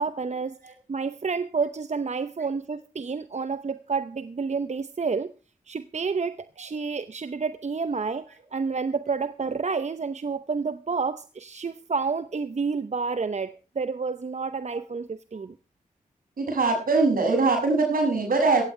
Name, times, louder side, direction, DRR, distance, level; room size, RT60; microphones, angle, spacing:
voice 1, 0.0-5.3 5.7-15.6, right 5 dB, 55° right, 0.8 m, -29 dB
voice 2, 16.4-18.6, right 3 dB, 80° right, 6.9 m, -22 dB
16.5 x 16.0 x 3.3 m
cardioid pair, 40°, 14 cm